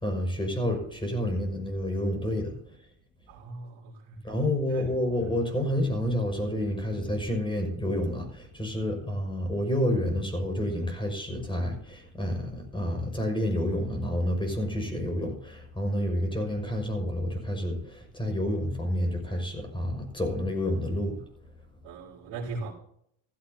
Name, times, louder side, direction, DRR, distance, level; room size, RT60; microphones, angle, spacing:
voice 1, 0.0-2.5 4.2-21.2, left 1 dB, 10° left, 5.6 m, -29 dB
voice 2, 3.3-4.2 4.7-4.8 21.8-22.7, right 3 dB, 90° right, 4.1 m, -39 dB
15.5 x 14.5 x 2.8 m
cardioid pair, 110°, 43 cm